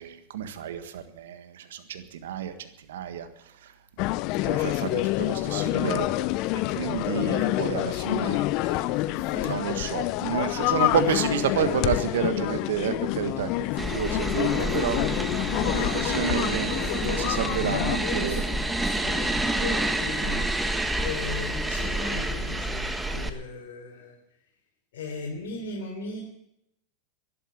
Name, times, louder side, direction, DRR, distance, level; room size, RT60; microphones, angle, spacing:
voice 1, 0.0-3.3 4.4-6.3 6.5-8.5 9.4-13.5 13.9-15.0 15.6-16.7 17.0-18.4, right 8 dB, 75° right, 9 dB, 1.6 m, -30 dB
sound 1, 4.0-18.0, left 18 dB, 55° left, 0.6 m, -27 dB
voice 2, 8.6-10.0 15.7-20.5 21.0-24.2 24.9-26.2, left 4 dB, 70° left, -1 dB, 3.5 m, -36 dB
sound 2, 13.8-23.3, right 1 dB, 5° right, 1.4 m, -28 dB
12.0 x 11.0 x 9.4 m, 0.83 s
hypercardioid pair, 100°, 0 cm